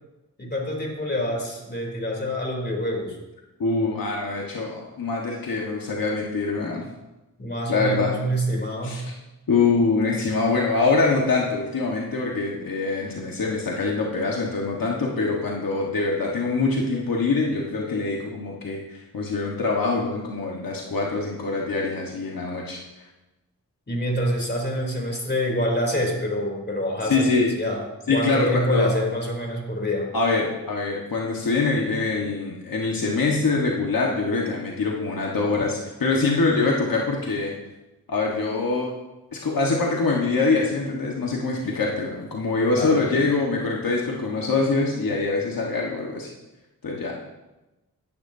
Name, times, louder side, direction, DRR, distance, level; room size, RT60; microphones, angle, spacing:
voice 1, 0.4-3.2 7.4-9.0 23.9-27.8 28.1-30.1 42.8-43.2, equal, 30° left, 0 dB, 3.4 m, -26 dB
voice 2, 3.6-6.8 7.7-8.1 8.8-9.0 9.5-22.8 27.0-27.5 28.1-29.0 30.1-37.5 38.1-38.9 39.3-46.3 46.8-47.1, left 3 dB, 70° left, -2 dB, 1.6 m, -24 dB
15.0 x 11.0 x 2.8 m, 1.0 s
cardioid pair, 60°, 35 cm